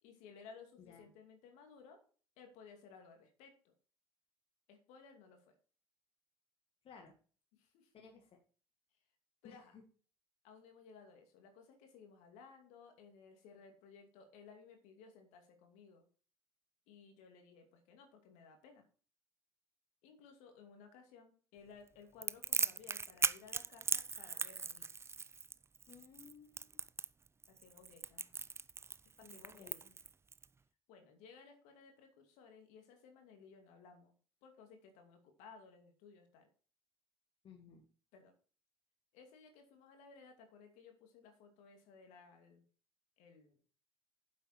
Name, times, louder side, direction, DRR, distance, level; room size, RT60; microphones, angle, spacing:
voice 1, 0.0-2.0 2.4-3.7 4.7-5.5 7.5-7.9 9.4-9.8 10.4-16.1 16.9-18.8 20.0-24.9 27.5-28.3 29.2-29.8 30.9-34.1 34.4-36.5 37.7-37.8 38.1-38.3 39.1-42.6 43.2-43.6, left 5 dB, 65° left, 5 dB, 2.6 m, -59 dB
voice 2, 0.8-1.1 6.8-7.1 7.9-8.4 9.4-9.8 25.9-26.8 29.2-30.0 37.4-37.8, left 6 dB, 45° left, 3 dB, 1.9 m, -58 dB
Crackle, 22.2-30.5, right 5 dB, 20° right, 0.5 m, -38 dB
9.1 x 7.7 x 4.4 m, 0.41 s
hypercardioid pair, 60°, 13 cm